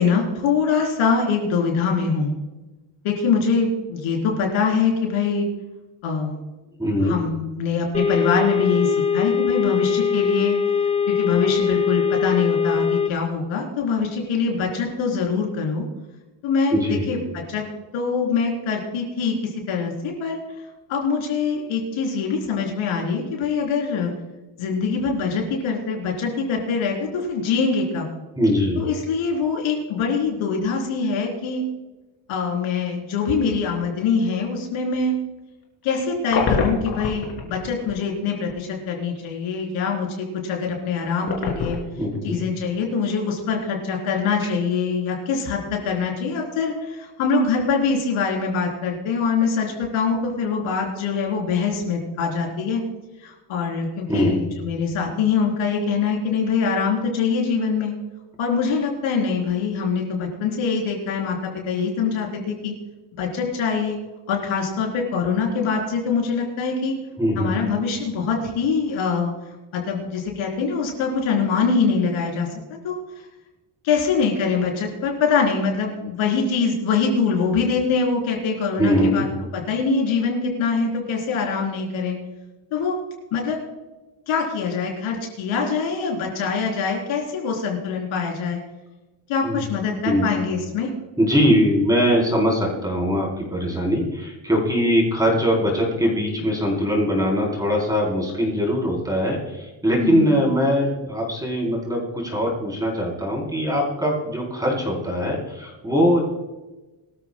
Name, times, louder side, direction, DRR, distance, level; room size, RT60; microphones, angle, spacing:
voice 1, 0.0-2.3 3.0-5.5 6.0-6.4 7.0-10.6 11.1-15.9 16.4-17.6 17.9-20.4 20.9-24.1 24.6-28.1 28.8-31.6 32.3-35.1 35.8-41.8 42.2-52.8 53.2-57.9 58.4-62.7 63.1-64.0 64.3-66.9 67.4-69.3 69.7-72.5 72.8-73.0 73.8-79.3 79.5-82.2 82.7-83.0 83.3-83.6 84.3-88.6 89.3-90.9 100.0-100.4, left 5 dB, 70° left, 0 dB, 4.1 m, -24 dB
voice 2, 6.8-7.2 16.7-17.1 28.4-28.8 42.0-42.4 54.1-54.4 67.2-67.6 78.8-79.3 89.4-89.6 90.0-90.3 91.2-106.2, equal, 5° right, -3 dB, 4.0 m, -21 dB
sound 1, 7.9-13.1, left 6 dB, 15° left, 1.3 m, -21 dB
sound 2, 35.6-37.9 38.5-38.6 41.2-42.3 42.7-42.8 46.3-46.7 47.1-47.2, left 4 dB, 50° left, 3.4 m, -26 dB
23.0 x 13.5 x 2.3 m, 1.1 s
cardioid pair, 160°, 49 cm